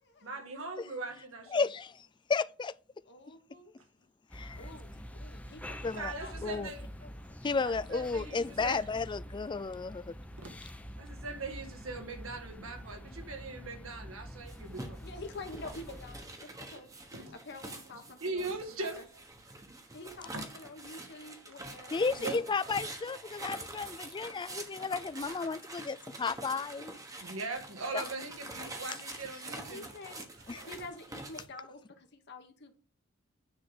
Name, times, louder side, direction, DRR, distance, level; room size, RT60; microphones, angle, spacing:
voice 1, 0.2-1.7 5.8-6.9 7.6-8.9 10.3-10.5 11.0-15.0 16.7-16.8 17.1-17.3 17.9-19.2 20.3-20.4 21.0-21.1 22.1-22.4 27.2-29.9 30.5-30.7, right 3 dB, 75° right, 1.8 m, -41 dB
voice 2, 1.5-1.9 2.3-2.7 4.3-4.6 5.8-6.1 6.4-6.7 7.4-10.1 21.9-27.0 27.9-28.0 30.5-30.6, left 4 dB, 20° left, 0.3 m, -33 dB
voice 3, 3.0-3.7 4.6-6.7 7.0-7.3 15.0-16.9 17.4-19.0 19.9-22.3 29.7-30.2 30.6-32.7, left 2 dB, 55° left, 1.2 m, -48 dB
sound 1, 4.3-16.2, equal, 5° left, 0.7 m, -46 dB
sound 2, 14.5-31.5, right 2 dB, 15° right, 1.2 m, -46 dB
9.7 x 3.7 x 6.4 m
head